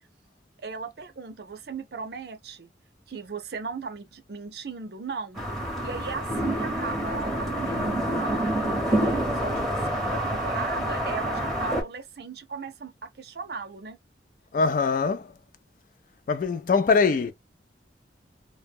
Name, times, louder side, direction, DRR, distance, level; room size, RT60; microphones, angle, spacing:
voice 1, 0.6-2.7 3.1-5.4 5.8-14.0, right 4 dB, 60° right, 0.5 m, -37 dB
sound 1, 5.4-11.8, right 1 dB, ahead, 0.8 m, -27 dB
voice 2, 14.5-15.3 16.3-17.3, left 5 dB, 45° left, 0.3 m, -22 dB
2.1 x 2.1 x 3.3 m
head